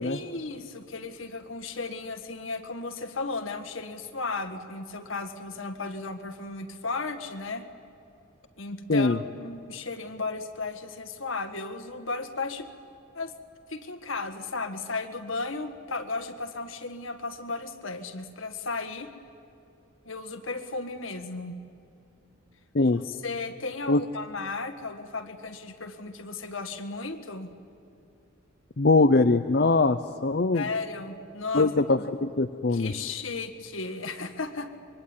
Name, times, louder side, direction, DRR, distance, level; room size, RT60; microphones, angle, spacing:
voice 1, 0.0-7.6 8.6-12.7 13.1-13.3 13.7-19.1 20.1-21.6 22.9-27.5 30.5-31.7 32.7-34.7, left 3 dB, 75° left, 9 dB, 1.7 m, -35 dB
voice 2, 28.8-30.6 31.5-32.9, left 3 dB, 50° left, 8 dB, 0.6 m, -22 dB
24.5 x 23.0 x 9.7 m, 2.6 s
head